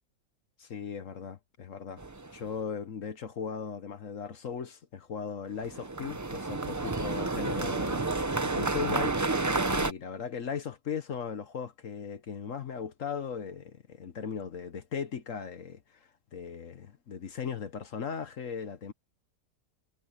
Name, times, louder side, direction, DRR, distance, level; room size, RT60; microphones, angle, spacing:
voice 1, 0.6-2.0 2.3-8.1 8.4-9.1 9.7-18.9, left 6 dB, 60° left, 1.4 m, -38 dB
sound 1, 2.0-2.4 5.6-9.9, right 3 dB, 30° right, 0.3 m, -30 dB
omnidirectional pair, 1.6 m